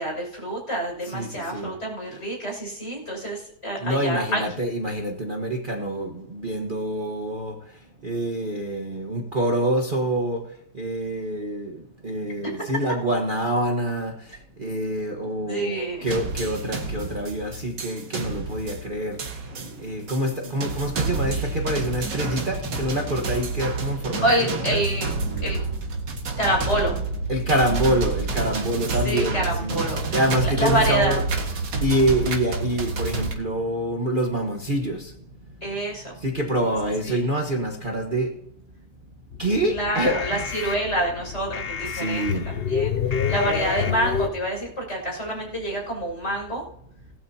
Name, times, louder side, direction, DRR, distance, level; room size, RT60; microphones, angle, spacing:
voice 1, 0.0-4.4 15.5-16.1 24.2-25.1 25.4-25.6 26.4-27.0 29.0-30.2 30.6-31.2 35.6-36.1 37.0-37.2 39.7-42.9 43.3-46.6, right 1 dB, 40° left, -1 dB, 6.7 m, -27 dB
voice 2, 1.0-1.7 2.0-2.3 3.8-25.0 25.3-25.6 27.3-35.1 36.1-38.3 39.4-40.7 41.8-42.7, right 1 dB, 30° right, 0 dB, 1.5 m, -26 dB
sound 1, 16.1-33.3, right 3 dB, 90° right, 2.4 m, -29 dB
sound 2, 39.3-44.3, left 7 dB, 55° left, 0.6 m, -28 dB
19.5 x 12.5 x 2.9 m, 0.74 s
omnidirectional pair, 1.9 m